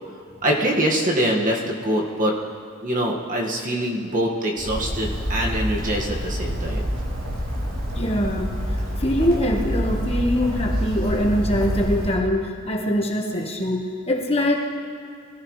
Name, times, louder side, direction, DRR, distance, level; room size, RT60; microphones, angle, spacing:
voice 1, 0.4-2.3 2.8-6.9, right 1 dB, 40° right, -1 dB, 1.9 m, -24 dB
Bird, 4.6-12.2, equal, 90° right, 3.5 m, -27 dB
voice 2, 7.9-8.5 9.0-14.6, equal, 30° left, 0 dB, 1.4 m, -23 dB
24.0 x 15.0 x 3.3 m, 2.4 s
head